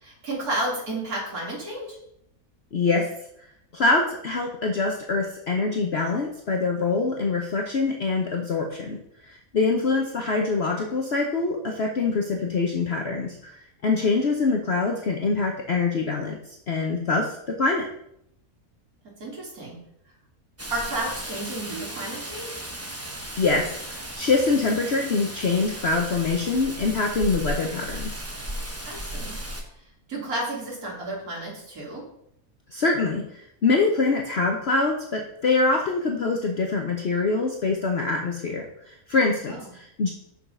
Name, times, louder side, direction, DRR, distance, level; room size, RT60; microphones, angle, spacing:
voice 1, 0.0-2.0 19.0-19.8 20.7-22.6 28.9-29.4 30.1-32.0 39.5-39.6, right 1 dB, 80° right, -5 dB, 2.8 m, -32 dB
voice 2, 2.7-3.1 3.7-17.9 23.4-28.2 32.7-40.1, left 3 dB, 50° left, 1 dB, 1.1 m, -24 dB
Rain, 20.6-29.6, right 1 dB, 10° right, 0.9 m, -35 dB
7.2 x 5.6 x 5.4 m, 0.73 s
omnidirectional pair, 1.5 m